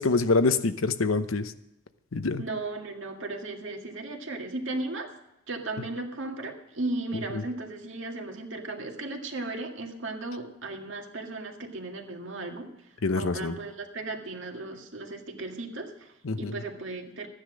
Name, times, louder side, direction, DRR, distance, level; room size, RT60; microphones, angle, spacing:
voice 1, 0.0-1.5 2.1-2.4 13.0-13.6 16.2-16.5, left 3 dB, 85° left, 10 dB, 0.8 m, -25 dB
voice 2, 2.4-5.1 5.5-12.7 13.1-17.3, right 2 dB, 65° right, 2 dB, 2.1 m, -36 dB
14.0 x 10.0 x 6.3 m, 0.87 s
head